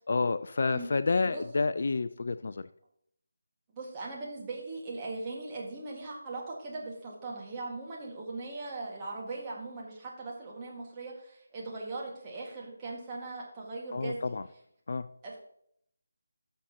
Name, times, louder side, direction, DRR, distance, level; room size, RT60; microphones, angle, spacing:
voice 1, 0.1-2.7 13.9-14.4 14.9-15.1, left 4 dB, 45° left, 14 dB, 0.3 m, -29 dB
voice 2, 3.7-14.4 15.2-15.4, right 3 dB, 20° right, -4 dB, 1.8 m, -39 dB
15.0 x 6.4 x 2.9 m, 0.71 s
figure-of-eight pair, 155°, 0 cm